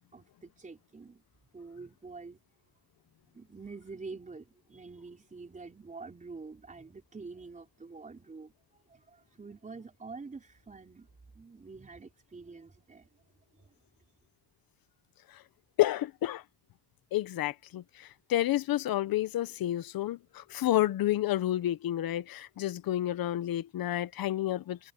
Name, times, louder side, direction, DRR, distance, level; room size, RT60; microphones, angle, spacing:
voice 1, 0.1-1.2 1.5-2.4 3.3-11.1 11.3-13.1, right 4 dB, 20° right, 4.9 m, -47 dB
voice 2, 15.8-16.4 17.1-24.8, left 14 dB, 70° left, 1.0 m, -30 dB
cardioid pair, 155°, 37 cm